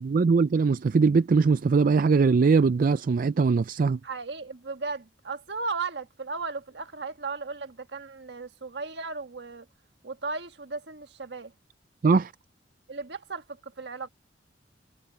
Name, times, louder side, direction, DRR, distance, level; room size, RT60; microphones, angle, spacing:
voice 1, 0.0-4.0 12.0-12.3, right 4 dB, 50° right, 0.4 m, -21 dB
voice 2, 4.0-9.7 10.0-11.5 12.9-14.1, right 4 dB, 70° right, 1.5 m, -36 dB
head